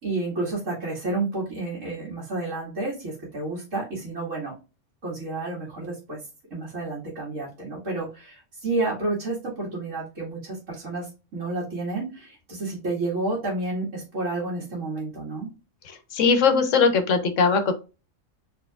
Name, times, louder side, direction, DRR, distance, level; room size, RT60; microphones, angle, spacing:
voice 1, 0.0-4.5 5.0-6.3 6.5-15.5, right 2 dB, 80° right, -7 dB, 2.4 m, -30 dB
voice 2, 16.1-17.7, left 5 dB, 75° left, 8 dB, 1.3 m, -20 dB
4.6 x 4.4 x 2.4 m, 0.30 s
omnidirectional pair, 1.3 m